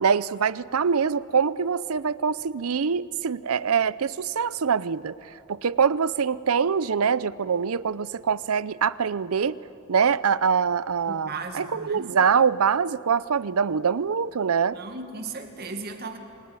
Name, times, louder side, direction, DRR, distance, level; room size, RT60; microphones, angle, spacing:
voice 1, 0.0-5.2 5.5-9.6 9.9-11.3 11.5-14.8, right 6 dB, 80° right, 18 dB, 0.6 m, -24 dB
voice 2, 11.1-12.1 14.7-16.2, right 3 dB, 45° right, 5 dB, 2.0 m, -36 dB
26.5 x 20.5 x 9.7 m, 2.8 s
head